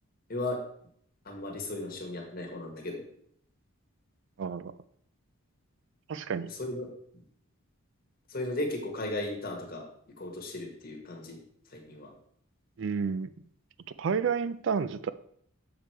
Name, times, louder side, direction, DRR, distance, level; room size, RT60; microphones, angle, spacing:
voice 1, 1.2-3.0 6.6-6.9 8.3-9.8 10.2-11.4 11.7-12.1, left 2 dB, 40° left, 0 dB, 1.5 m, -35 dB
voice 2, 4.4-4.7 6.1-6.5 12.8-13.3 14.0-15.1, right 6 dB, 55° right, 15 dB, 0.4 m, -30 dB
6.9 x 4.9 x 4.3 m, 0.65 s
head